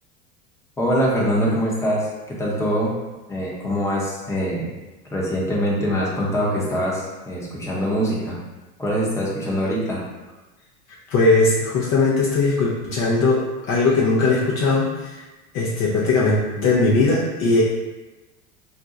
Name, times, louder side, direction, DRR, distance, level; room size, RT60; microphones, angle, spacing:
voice 1, 0.8-3.0 3.3-4.7 5.1-8.4 8.8-10.0, equal, 5° left, -5 dB, 0.7 m, -23 dB
voice 2, 11.1-15.2 15.5-17.6, left 3 dB, 40° left, -5 dB, 0.5 m, -19 dB
2.5 x 2.2 x 3.9 m, 1.1 s
hypercardioid pair, 100°, 43 cm